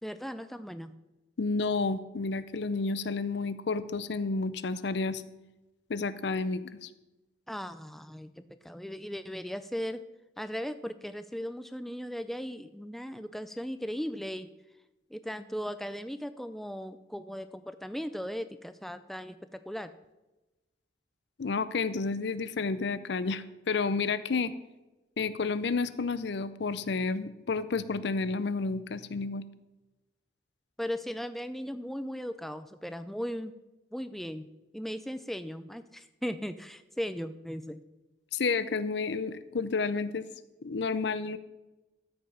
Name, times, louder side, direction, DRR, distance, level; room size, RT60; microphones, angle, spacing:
voice 1, 0.0-0.9 7.5-10.1 10.4-14.5 15.1-19.9 30.8-33.5 33.9-37.8, equal, ahead, 11 dB, 0.4 m, -37 dB
voice 2, 1.4-5.2 5.9-6.9 21.4-24.5 25.2-29.4 38.3-40.3 40.6-41.4, left 4 dB, 65° left, 14 dB, 0.5 m, -31 dB
13.0 x 5.3 x 5.7 m, 1.1 s
head